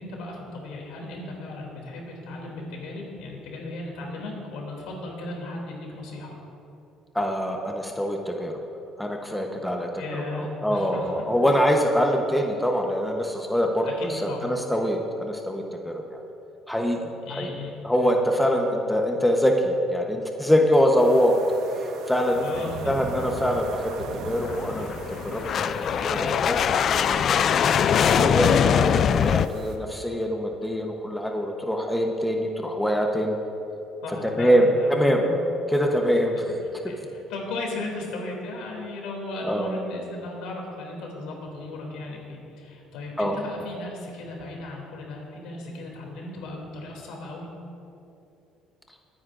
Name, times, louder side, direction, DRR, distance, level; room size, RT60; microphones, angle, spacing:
voice 1, 0.0-6.4 10.0-11.1 13.8-14.5 17.2-17.8 22.4-23.2 34.0-35.4 36.4-36.5 36.8-47.5, left 2 dB, 80° left, -1 dB, 2.9 m, -36 dB
voice 2, 7.1-8.5 9.0-9.9 10.3-16.2 16.7-17.0 17.3-17.5 17.8-21.4 21.8-22.5 22.9-24.9 25.2-26.6 26.9-27.4 28.1-33.4 34.2-35.2 35.7-36.6 36.8-36.9 39.4-39.7 43.2-43.4, equal, 5° left, 2 dB, 1.0 m, -24 dB
sound 1, 21.0-29.8, right 4 dB, 75° right, 1.0 m, -40 dB
sound 2, 23.2-29.5, left 8 dB, 50° left, 0.3 m, -23 dB
23.0 x 9.6 x 2.6 m, 2.8 s
cardioid pair, 100°, 0 cm